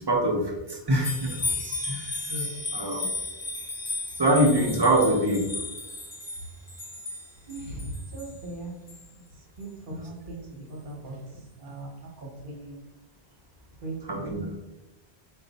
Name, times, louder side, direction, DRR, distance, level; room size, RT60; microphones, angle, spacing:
voice 1, 0.0-1.6 1.8-2.4 2.7-3.1 4.2-5.5 9.9-10.1 14.0-14.5, right 1 dB, 35° right, 0 dB, 0.4 m, -25 dB
sound 1, 1.0-8.3 8.9-9.0, left 2 dB, 30° left, 0.6 m, -34 dB
voice 2, 7.5-8.7 9.1-9.2 9.6-12.8 13.8-14.3, right 2 dB, 55° right, -1 dB, 1.0 m, -39 dB
4.0 x 2.2 x 3.9 m, 1.0 s
omnidirectional pair, 1.1 m